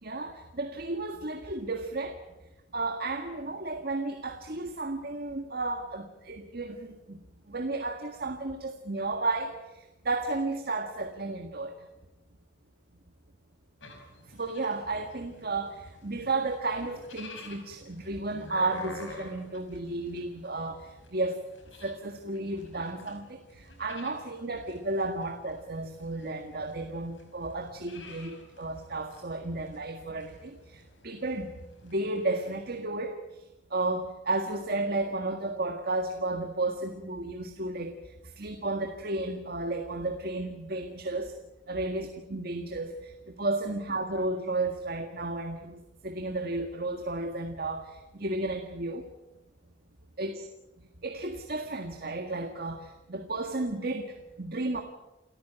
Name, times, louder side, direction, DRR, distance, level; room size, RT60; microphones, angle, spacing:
voice 1, 0.0-2.2 2.7-7.2 7.5-11.9 14.3-21.5 21.8-33.5 33.7-41.4 41.7-49.1 50.2-50.5 51.0-54.8, right 2 dB, 55° right, 5 dB, 1.8 m, -33 dB
sound 1, 13.8-32.8, left 2 dB, 85° left, 5.3 m, -50 dB
29.5 x 14.0 x 8.9 m, 0.99 s
head